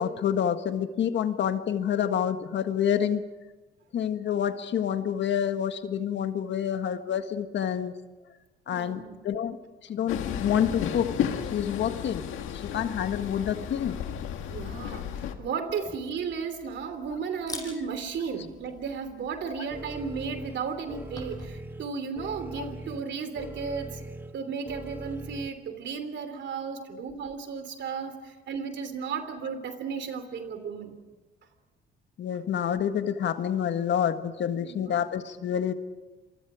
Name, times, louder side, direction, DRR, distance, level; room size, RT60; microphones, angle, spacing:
voice 1, 0.0-3.2 3.9-7.9 8.7-9.6 9.8-14.0 32.2-35.7, left 9 dB, 65° left, 8 dB, 1.7 m, -28 dB
voice 2, 8.7-9.2 14.5-24.0 24.3-31.0 34.6-35.0, right 5 dB, 65° right, 9 dB, 3.0 m, -34 dB
Train, 10.1-15.3, left 9 dB, 90° left, 1.9 m, -33 dB
Camera, 15.7-21.5, left 2 dB, 20° left, 6.4 m, -47 dB
sound 1, 19.7-25.5, right 1 dB, 10° right, 1.3 m, -41 dB
27.5 x 24.0 x 5.0 m, 1.2 s
cardioid pair, 90°, 20 cm